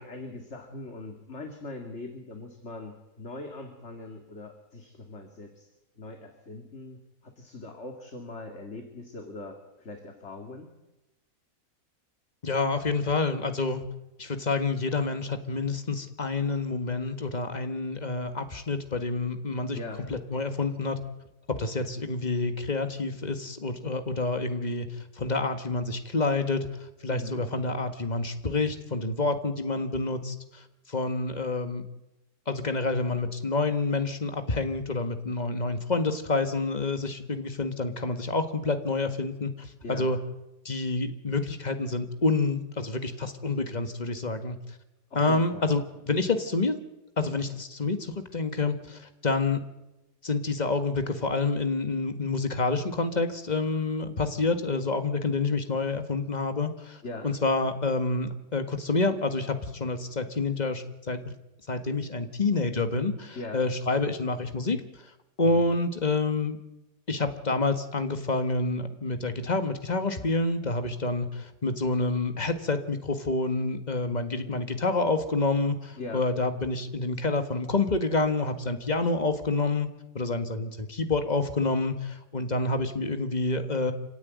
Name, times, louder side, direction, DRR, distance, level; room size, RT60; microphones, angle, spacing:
voice 1, 0.0-5.7 6.0-10.7 19.7-20.0 27.1-27.4 39.8-40.1 45.1-45.7 57.0-57.3 63.3-63.6 65.4-65.7 75.9-76.3, left 2 dB, 45° left, 3 dB, 2.5 m, -41 dB
voice 2, 12.4-13.8 14.2-19.8 20.1-21.0 21.5-24.9 25.2-26.7 27.0-30.3 30.9-31.8 32.5-40.2 40.6-44.6 45.1-45.8 46.1-46.8 47.2-49.6 50.2-57.0 57.2-61.2 61.7-64.8 65.4-66.6 67.1-79.9 80.1-83.9, left 3 dB, 25° left, 8 dB, 1.6 m, -28 dB
26.0 x 16.5 x 9.4 m, 0.98 s
omnidirectional pair, 1.7 m